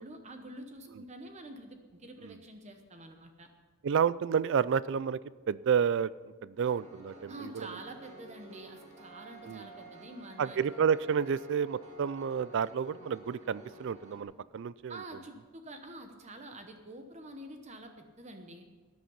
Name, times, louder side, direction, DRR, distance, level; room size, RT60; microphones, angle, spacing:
voice 1, 0.0-3.5 7.3-10.7 14.9-18.7, right 1 dB, 30° right, 6 dB, 0.9 m, -47 dB
voice 2, 3.8-5.2 5.5-6.1 6.4-7.5 9.5-9.6 10.4-15.0, right 7 dB, 55° right, 20 dB, 0.3 m, -30 dB
Piano, 6.6-14.2, right 1 dB, 75° right, 2.1 m, -53 dB
Wind instrument woodwind instrument, 9.0-12.7, right 2 dB, 10° right, 3.3 m, -54 dB
13.0 x 10.5 x 5.6 m, 1.3 s
head